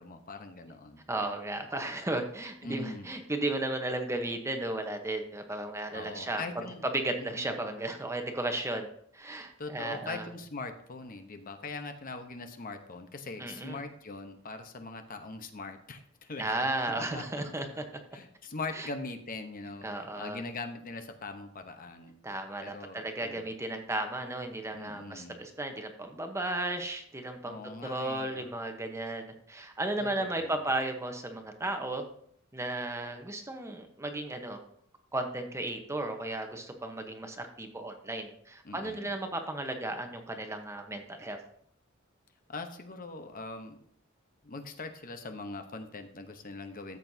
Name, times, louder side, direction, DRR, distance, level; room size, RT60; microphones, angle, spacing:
voice 1, 0.0-1.0 2.6-3.1 5.9-6.9 7.2-7.6 9.6-16.5 16.9-17.2 17.5-17.7 18.1-22.2 22.6-23.5 24.7-25.4 27.4-28.5 30.0-30.7 38.6-39.1 42.5-43.8 44.4-47.0, left 3 dB, 45° left, 7 dB, 0.9 m, -41 dB
voice 2, 1.1-10.3 13.4-13.8 16.4-17.8 18.8-18.9 19.8-20.4 22.2-32.0 32.5-34.6 35.1-41.4, right 2 dB, 15° right, 5 dB, 1.0 m, -34 dB
13.5 x 7.8 x 2.8 m, 0.65 s
head